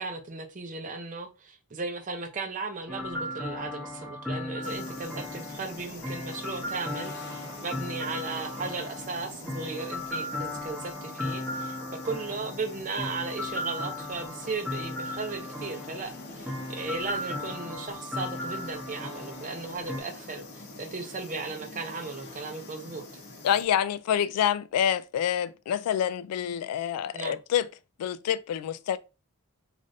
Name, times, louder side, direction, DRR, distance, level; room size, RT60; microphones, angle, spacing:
voice 1, 0.0-11.8 12.0-23.0 27.1-27.4, right 4 dB, 35° right, 0.5 m, -36 dB
sound 1, 2.9-20.0, left 1 dB, 5° left, 0.8 m, -36 dB
sound 2, 4.6-23.6, left 2 dB, 50° left, 0.7 m, -45 dB
voice 2, 23.4-27.7 28.0-29.0, left 9 dB, 90° left, 0.3 m, -27 dB
3.2 x 2.5 x 2.6 m
head